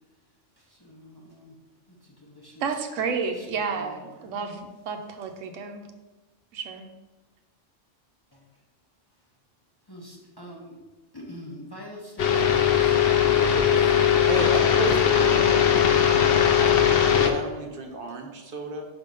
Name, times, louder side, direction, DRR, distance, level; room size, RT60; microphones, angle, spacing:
voice 1, 0.6-1.5 1.9-2.8 3.4-3.5 3.8-4.3 9.9-10.8 11.1-14.8 15.1-15.2, equal, 20° left, -2 dB, 0.8 m, -45 dB
voice 2, 2.6-5.8 6.5-6.9, right 5 dB, 85° right, 6 dB, 1.1 m, -31 dB
sound 1, 12.2-17.3, left 8 dB, 60° left, 0.8 m, -19 dB
voice 3, 14.3-15.9 16.6-18.9, right 3 dB, 50° right, 4 dB, 0.9 m, -33 dB
6.2 x 3.6 x 5.2 m, 1.2 s
omnidirectional pair, 1.3 m